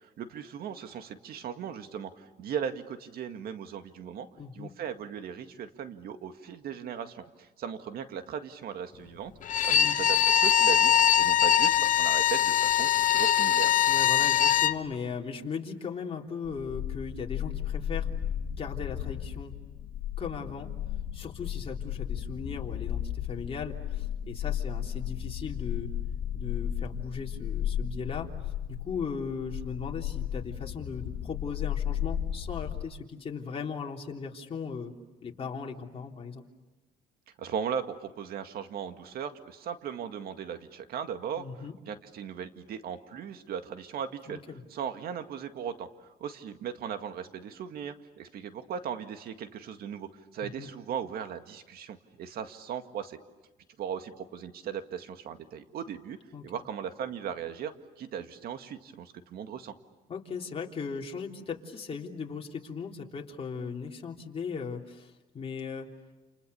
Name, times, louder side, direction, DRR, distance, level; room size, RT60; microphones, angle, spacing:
voice 1, 0.0-4.3 4.5-9.3 9.7-13.7 37.4-41.5 41.9-44.4 44.7-53.2 53.8-56.2 56.4-59.7, right 8 dB, 65° right, 8 dB, 2.0 m, -38 dB
voice 2, 4.4-4.7 9.7-10.0 13.9-18.1 18.6-19.5 20.2-20.7 21.1-25.9 26.3-28.3 28.7-34.9 35.2-36.4 41.4-41.8 44.3-44.6 50.4-50.7 56.3-56.5 60.1-65.9, left 5 dB, 35° left, 0 dB, 3.4 m, -38 dB
Bowed string instrument, 9.4-14.8, left 10 dB, 50° left, 0.9 m, -22 dB
sound 1, 16.4-32.8, left 10 dB, 85° left, 1.8 m, -34 dB
29.0 x 29.0 x 7.0 m, 1.1 s
cardioid pair, 110°, 17 cm